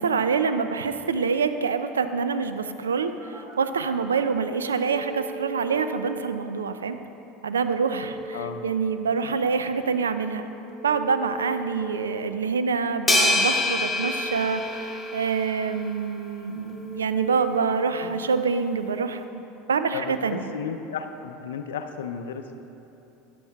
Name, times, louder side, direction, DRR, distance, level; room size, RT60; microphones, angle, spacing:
voice 1, 0.0-7.0 7.4-10.4 10.8-20.5, right 5 dB, 85° right, 10 dB, 0.4 m, -26 dB
Telephone, 3.2-4.2 4.7-6.2 7.7-9.2 10.7-12.2 13.7-15.2 16.7-18.2, right 2 dB, 15° right, 2.0 m, -39 dB
voice 2, 8.3-8.6 18.0-18.2 19.9-22.5, left 7 dB, 75° left, 7 dB, 0.5 m, -34 dB
sound 1, 13.1-15.6, left 2 dB, 15° left, 1.3 m, -25 dB
12.0 x 9.2 x 2.3 m, 3.0 s
hypercardioid pair, 80°, 0 cm